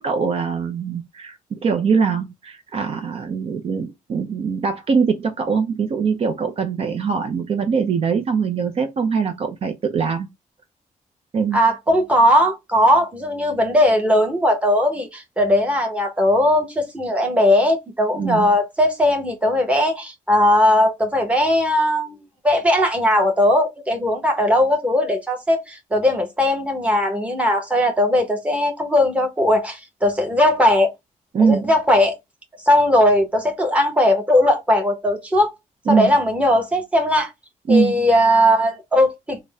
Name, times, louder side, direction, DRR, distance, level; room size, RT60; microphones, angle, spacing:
voice 1, 0.0-10.3 11.3-11.6 18.2-18.5 31.3-31.7 35.9-36.1 37.7-38.0, right 5 dB, 45° right, 0.6 m, -22 dB
voice 2, 11.5-22.2 22.4-30.9 31.4-32.1 32.7-35.5 35.9-37.3 37.7-39.4, left 1 dB, 10° right, 1.1 m, -18 dB
3.9 x 2.2 x 3.4 m
wide cardioid pair, 150°, 14 cm